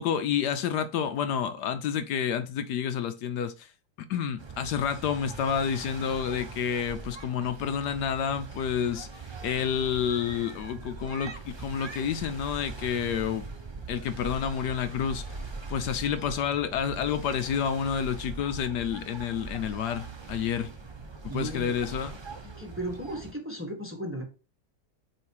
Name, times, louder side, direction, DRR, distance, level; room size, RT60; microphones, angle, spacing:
voice 1, 0.0-3.7 4.1-9.1 9.4-13.4 13.9-15.3 15.7-20.7 21.3-22.1, left 8 dB, 75° left, 1.1 m, -29 dB
sound 1, 4.4-23.3, right 4 dB, 45° right, 0.3 m, -41 dB
voice 2, 21.3-21.8 22.4-24.3, right 1 dB, 10° right, 1.1 m, -35 dB
8.8 x 3.2 x 4.6 m
omnidirectional pair, 1.9 m